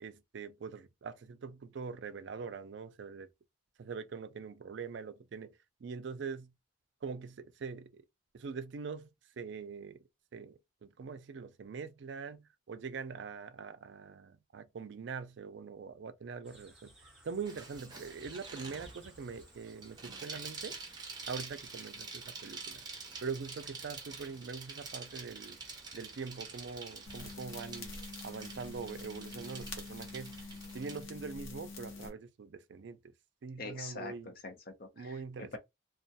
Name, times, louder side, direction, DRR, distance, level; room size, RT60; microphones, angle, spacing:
voice 1, 0.0-3.3 3.8-5.5 5.8-6.5 7.0-8.0 8.3-9.1 9.4-10.0 10.3-16.9 17.2-20.8 21.3-22.8 23.2-25.6 25.9-27.9 28.2-30.4 30.7-33.0 33.4-34.3 35.0-35.6, right 5 dB, 65° right, 0.4 m, -43 dB
sound 1, 16.4-30.4, right 1 dB, 5° right, 1.0 m, -60 dB
Bicycle, 17.5-31.0, right 4 dB, 20° right, 0.6 m, -47 dB
sound 2, 27.1-32.1, left 3 dB, 80° left, 0.7 m, -46 dB
voice 2, 33.6-35.6, left 3 dB, 50° left, 0.6 m, -44 dB
2.3 x 2.2 x 2.7 m
head